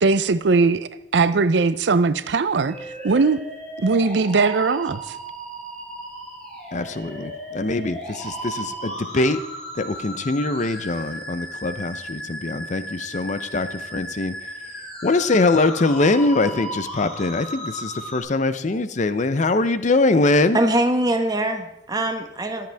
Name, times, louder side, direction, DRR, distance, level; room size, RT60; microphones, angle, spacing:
voice 1, 0.0-2.7 3.0-3.4 3.8-5.0, right 4 dB, 80° right, 0.5 m, -19 dB
sound 1, 2.7-18.2, equal, 5° left, 4.2 m, -35 dB
voice 2, 6.7-9.4 9.8-14.3 15.0-20.6, left 2 dB, 45° left, 0.6 m, -22 dB
voice 3, 20.5-22.7, right 1 dB, 20° right, 1.1 m, -22 dB
22.0 x 7.8 x 3.4 m
head